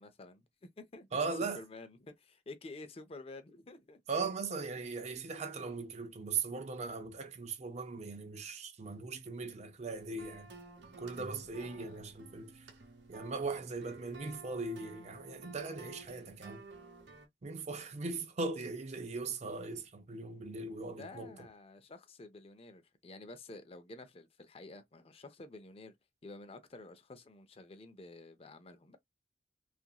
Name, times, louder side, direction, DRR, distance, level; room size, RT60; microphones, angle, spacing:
voice 1, 0.0-1.1 1.5-4.0 11.6-12.1 20.9-25.9 26.2-29.0, left 2 dB, 35° left, 0.5 m, -51 dB
voice 2, 1.1-1.6 4.1-10.5 11.0-12.7 13.1-16.7 17.4-21.3, right 4 dB, 40° right, 0.5 m, -39 dB
sound 1, 9.9-17.3, right 3 dB, 80° right, 0.8 m, -53 dB
2.9 x 2.5 x 2.3 m
head